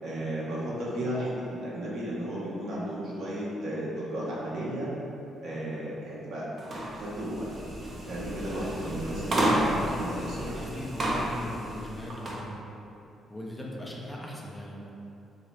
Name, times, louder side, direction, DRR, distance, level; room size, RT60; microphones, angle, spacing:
voice 1, 0.0-4.9 5.4-6.5 6.9-7.6 8.1-10.6, right 1 dB, 70° right, -7 dB, 0.9 m, -34 dB
sound 1, 6.6-12.4, right 1 dB, 45° right, 0.5 m, -31 dB
voice 2, 10.4-12.6 13.3-14.9, left 1 dB, 10° left, -4 dB, 0.5 m, -39 dB
2.8 x 2.8 x 3.2 m, 2.8 s
cardioid pair, 90°, 0 cm